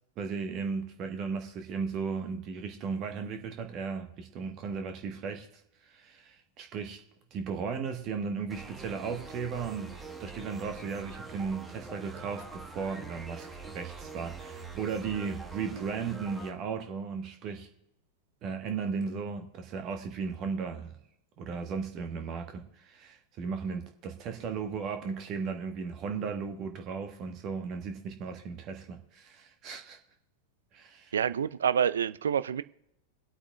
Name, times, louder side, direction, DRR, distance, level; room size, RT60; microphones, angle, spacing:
voice 1, 0.2-5.5 5.8-7.0 7.3-9.9 10.2-17.7 18.4-21.0 21.4-30.0 30.7-31.1, right 5 dB, 35° right, 1.3 m, -36 dB
sound 1, 8.5-16.5, right 4 dB, 5° right, 1.3 m, -44 dB
voice 2, 31.1-32.6, right 8 dB, 65° right, 0.4 m, -27 dB
24.0 x 8.5 x 2.3 m
figure-of-eight pair, 90°, 0 cm